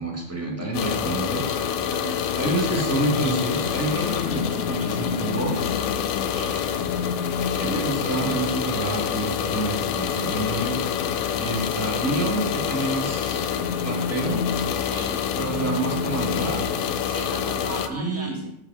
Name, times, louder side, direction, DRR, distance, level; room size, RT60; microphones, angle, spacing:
voice 1, 0.0-1.6 2.4-5.7 7.6-10.9 11.4-13.5 13.8-14.5 15.3-16.6 17.9-18.4, right 2 dB, 10° right, -2 dB, 1.6 m, -28 dB
sound 1, 0.7-17.9, left 8 dB, 85° left, 1.0 m, -26 dB
voice 2, 1.9-2.2 6.2-6.6 14.8-15.2 17.0-18.5, right 4 dB, 60° right, 2 dB, 0.9 m, -38 dB
sound 2, 2.4-7.4, left 7 dB, 65° left, 0.7 m, -37 dB
6.4 x 4.9 x 4.8 m, 0.81 s
omnidirectional pair, 1.4 m